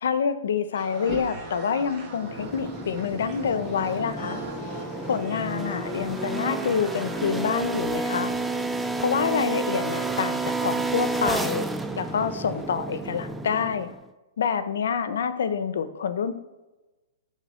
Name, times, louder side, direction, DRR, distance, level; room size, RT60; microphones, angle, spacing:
voice 1, 0.0-4.4 5.1-8.3 9.0-11.6 12.0-13.9 14.4-16.3, left 6 dB, 70° left, 11 dB, 0.8 m, -27 dB
sound 1, 0.7-8.6, right 2 dB, 20° right, 1.7 m, -40 dB
sound 2, 2.2-14.0, right 2 dB, 5° right, 0.3 m, -31 dB
sound 3, 3.6-12.6, left 1 dB, 10° left, 1.8 m, -45 dB
10.5 x 3.7 x 5.7 m, 1.1 s
hypercardioid pair, 165°, 0 cm